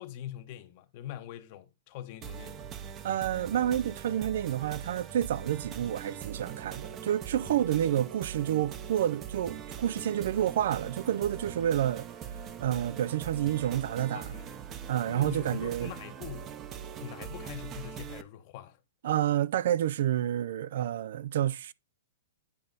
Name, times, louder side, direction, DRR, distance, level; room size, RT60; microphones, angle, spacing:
voice 1, 0.0-2.7 7.4-7.8 14.1-14.6 15.0-16.6 17.0-18.8, left 12 dB, 45° left, 1.0 m, -43 dB
sound 1, 2.2-18.2, right 8 dB, 25° right, 0.7 m, -42 dB
voice 2, 3.0-12.0 12.6-14.3 14.9-15.9 19.0-21.7, right 11 dB, 65° right, 0.4 m, -29 dB
9.8 x 4.0 x 3.8 m
hypercardioid pair, 140°, 0 cm